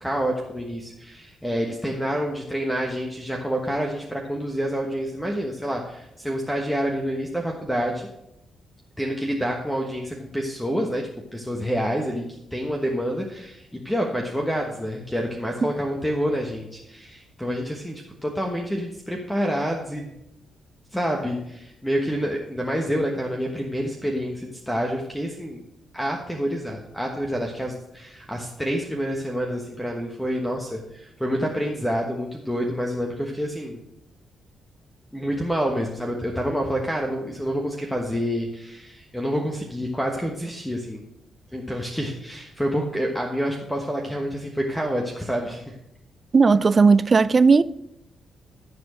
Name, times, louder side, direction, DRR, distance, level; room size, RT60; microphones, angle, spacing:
voice 1, 0.0-8.1 9.0-12.2 12.5-20.2 20.9-25.6 25.9-33.8 35.1-41.0 41.5-45.7, equal, 5° left, 1.2 m, -28 dB
voice 2, 46.3-47.6, right 4 dB, 40° right, 0.4 m, -16 dB
12.5 x 4.4 x 6.4 m
cardioid pair, 70°, 0 cm